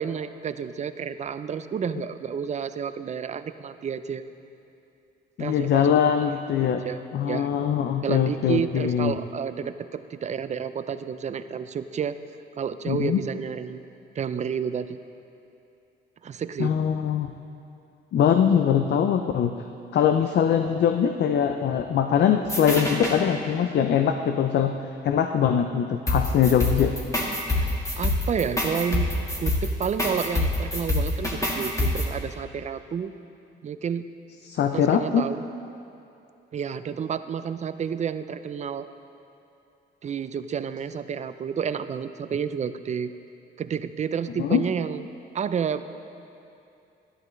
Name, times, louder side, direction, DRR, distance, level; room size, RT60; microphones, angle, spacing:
voice 1, 0.0-4.2 5.4-5.9 6.6-7.0 7.3-7.5 8.0-12.2 12.6-13.8 14.2-15.0 16.2-16.7 27.5-27.7 28.0-29.1 29.4-33.1 33.6-34.1 34.7-35.4 36.5-38.9 40.0-43.1 43.6-45.1 45.3-45.8, right 7 dB, 35° right, 12 dB, 0.4 m, -30 dB
voice 2, 5.4-6.8 7.1-9.1 12.9-13.2 16.6-17.3 18.1-19.5 19.9-24.7 25.0-26.9 34.5-35.2 44.4-44.6, left 8 dB, 60° left, 6 dB, 0.5 m, -22 dB
sound 1, 22.5-23.2 26.1-32.1, left 2 dB, 15° left, 1.6 m, -25 dB
12.0 x 11.0 x 3.2 m, 2.6 s
cardioid pair, 90°, 20 cm